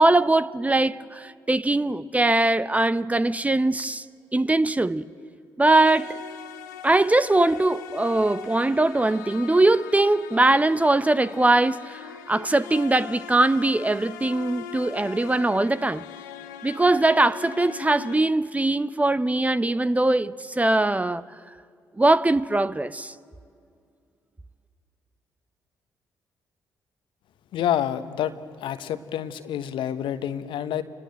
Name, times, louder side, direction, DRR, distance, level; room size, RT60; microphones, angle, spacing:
voice 1, 0.0-4.0 4.3-5.1 5.6-6.2 6.8-16.0 16.6-21.2 22.0-23.1, right 2 dB, 15° right, 0.7 m, -21 dB
sound 1, 5.8-18.2, left 10 dB, 80° left, 0.9 m, -41 dB
voice 2, 27.5-28.3 28.6-30.8, left 10 dB, 60° left, 1.2 m, -28 dB
29.0 x 20.5 x 7.8 m
figure-of-eight pair, 40°, 10 cm